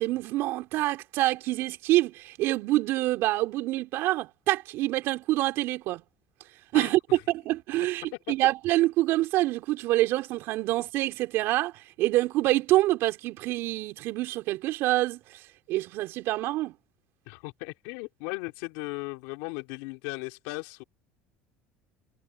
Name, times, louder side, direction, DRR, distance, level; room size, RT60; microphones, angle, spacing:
voice 1, 0.0-6.0 6.7-7.0 7.3-15.4 15.7-16.8, right 17 dB, 65° right, 3.6 m, -26 dB
voice 2, 6.7-7.2 17.3-20.8, left 26 dB, 80° left, 3.4 m, -37 dB
supercardioid pair, 105°, 5 cm